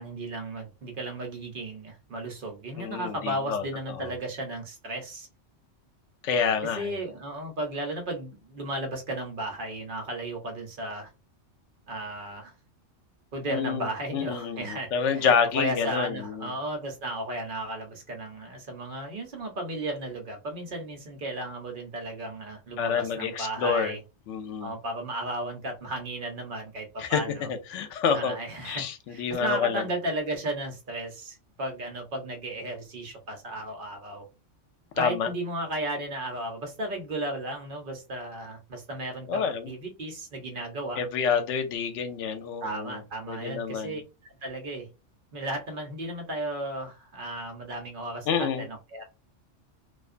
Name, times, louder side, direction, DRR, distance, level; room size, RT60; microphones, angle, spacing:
voice 1, 0.0-5.3 6.8-11.1 11.9-12.5 13.3-24.0 24.6-27.5 28.1-34.3 34.9-41.0 42.6-44.0 44.4-44.9 45.3-49.0, right 1 dB, 50° right, 0.8 m, -34 dB
voice 2, 2.8-3.6 4.0-4.1 6.2-6.9 13.5-16.5 22.8-23.9 24.3-24.7 27.0-28.4 28.6-29.8 35.0-35.3 39.3-39.7 41.0-43.0 43.3-44.0 48.3-48.7, left 6 dB, 80° left, 0.9 m, -28 dB
2.4 x 2.3 x 2.4 m
omnidirectional pair, 1.3 m